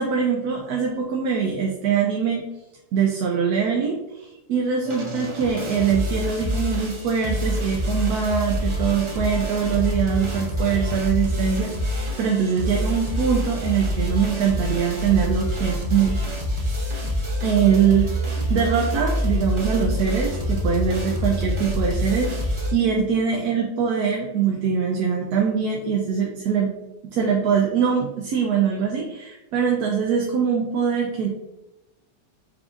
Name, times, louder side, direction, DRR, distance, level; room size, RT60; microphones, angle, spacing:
voice 1, 0.0-2.4 2.9-16.2 17.4-18.1 18.5-26.7 27.1-31.3, right 7 dB, 70° right, 0 dB, 1.1 m, -23 dB
sound 1, 4.8-22.7, equal, 45° right, 0.4 m, -26 dB
4.9 x 3.5 x 2.5 m, 0.95 s
omnidirectional pair, 1.8 m